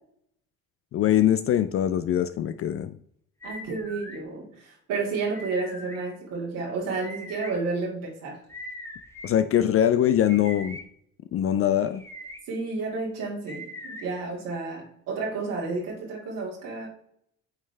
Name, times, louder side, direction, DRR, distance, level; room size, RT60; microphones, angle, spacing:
voice 1, 0.9-2.9 9.2-10.8 11.3-12.0, left 10 dB, 45° left, 12 dB, 0.4 m, -22 dB
sound 1, 3.4-4.2 5.3-6.0 7.0-7.5 8.5-9.3 10.3-10.8 11.8-12.4 13.5-14.0, equal, 10° left, 1.3 m, -41 dB
voice 2, 3.4-8.4 12.5-16.9, right 3 dB, 80° right, -3 dB, 2.1 m, -31 dB
9.0 x 3.3 x 3.2 m, 0.68 s
supercardioid pair, 80°, 33 cm